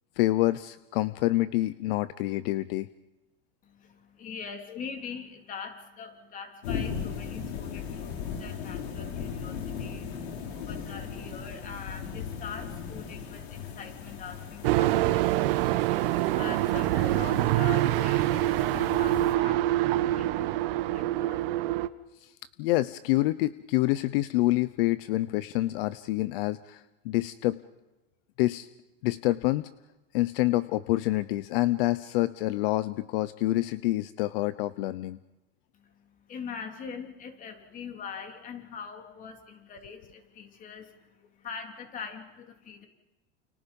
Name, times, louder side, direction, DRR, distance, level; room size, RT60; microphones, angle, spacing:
voice 1, 0.2-2.9 19.4-19.5 22.2-22.3 22.6-27.6 28.4-28.7 29.0-29.7 30.1-35.2, left 18 dB, 65° left, 15 dB, 0.9 m, -27 dB
voice 2, 3.6-21.6 35.7-42.9, left 6 dB, 25° left, 5 dB, 3.4 m, -43 dB
sound 1, 6.6-19.3, left 7 dB, 90° left, 5.1 m, -38 dB
sound 2, 14.6-21.9, right 16 dB, 65° right, 1.2 m, -25 dB
29.5 x 29.5 x 5.4 m, 1.0 s
supercardioid pair, 155°, 31 cm